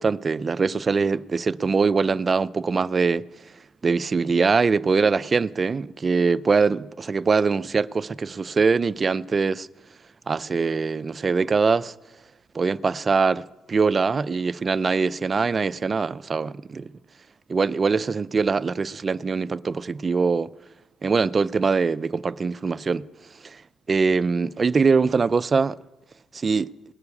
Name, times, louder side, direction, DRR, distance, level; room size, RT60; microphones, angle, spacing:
voice 1, 0.0-3.2 3.8-9.7 10.3-11.9 12.5-13.4 13.7-16.9 17.5-20.5 21.0-23.1 23.4-23.6 23.9-25.8 26.3-26.7, right 4 dB, 35° right, 0.4 m, -22 dB
19.0 x 6.9 x 9.7 m
cardioid pair, 90°, 0 cm